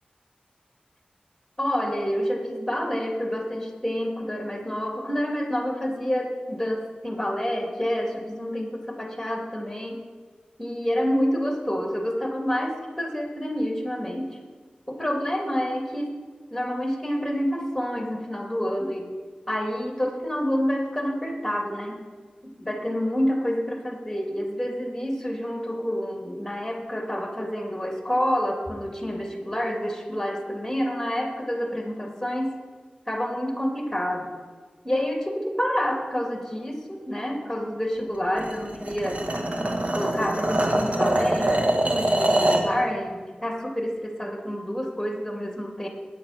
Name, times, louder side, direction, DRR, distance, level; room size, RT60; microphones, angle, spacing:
voice 1, 1.6-10.0 10.6-14.3 14.9-16.1 16.5-19.0 19.5-22.0 22.6-32.5 33.1-34.3 34.8-39.2 39.9-45.9, equal, 5° left, 1 dB, 2.7 m, -28 dB
sound 1, 38.4-42.7, right 1 dB, 50° right, 1.3 m, -24 dB
9.5 x 8.5 x 5.9 m, 1.5 s
wide cardioid pair, 50°, 3 cm